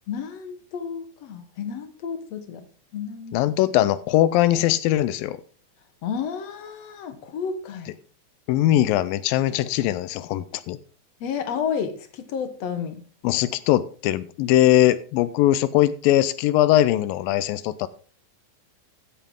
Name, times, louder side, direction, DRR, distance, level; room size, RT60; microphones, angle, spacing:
voice 1, 0.1-2.7 2.9-3.4 6.0-8.0 11.2-13.0, left 7 dB, 60° left, 1.9 m, -31 dB
voice 2, 3.3-5.4 8.5-10.8 13.2-17.9, left 13 dB, 85° left, 2.3 m, -21 dB
14.0 x 8.1 x 3.7 m
omnidirectional pair, 4.1 m